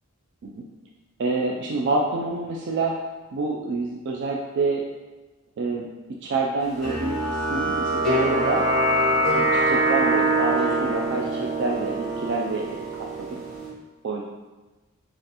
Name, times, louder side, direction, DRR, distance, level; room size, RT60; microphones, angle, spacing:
voice 1, 1.2-3.0 3.3-4.8 5.6-5.9 6.2-7.2 7.5-8.6 9.4-13.4 14.0-14.2, right 3 dB, 55° right, -1 dB, 0.3 m, -27 dB
sound 1, 6.8-13.7, right 1 dB, ahead, 1.1 m, -24 dB
5.1 x 2.5 x 2.9 m, 1.2 s
head